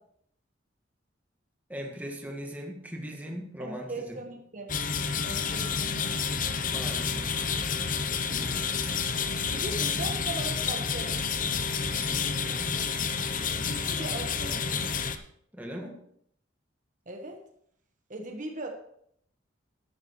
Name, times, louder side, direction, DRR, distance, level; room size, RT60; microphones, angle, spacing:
voice 1, 1.7-4.2 6.7-8.8 12.1-12.8 15.5-15.9, equal, 10° right, 0 dB, 1.7 m, -40 dB
voice 2, 3.6-4.7 5.2-6.2 9.5-11.2 13.5-14.6 17.1-17.4 18.1-18.7, right 2 dB, 40° right, 3 dB, 1.3 m, -39 dB
sound 1, 4.7-15.2, left 5 dB, 45° left, 0.8 m, -29 dB
13.0 x 12.0 x 3.2 m, 0.69 s
head